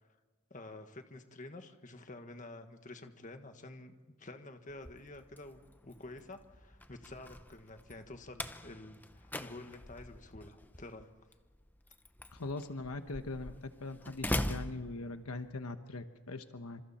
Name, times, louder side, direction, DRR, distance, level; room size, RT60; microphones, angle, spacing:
voice 1, 0.5-11.1, left 2 dB, 35° left, 6 dB, 1.6 m, -49 dB
Slam, 4.7-15.6, left 1 dB, 10° left, 0.8 m, -43 dB
voice 2, 12.3-16.8, left 2 dB, 75° left, 8 dB, 1.2 m, -41 dB
28.5 x 27.0 x 4.4 m, 1.3 s
head